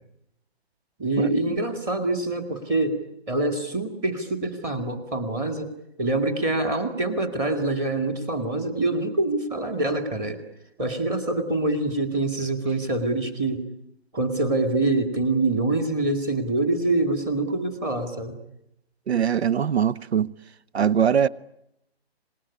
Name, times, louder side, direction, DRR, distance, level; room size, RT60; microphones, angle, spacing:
voice 1, 1.0-3.0 3.3-5.7 6.0-10.4 10.8-13.7 14.1-18.4, right 2 dB, 10° right, 2.1 m, -25 dB
voice 2, 19.1-20.3 20.7-21.3, right 8 dB, 75° right, 0.9 m, -21 dB
26.0 x 20.0 x 9.8 m
hypercardioid pair, 160°, 32 cm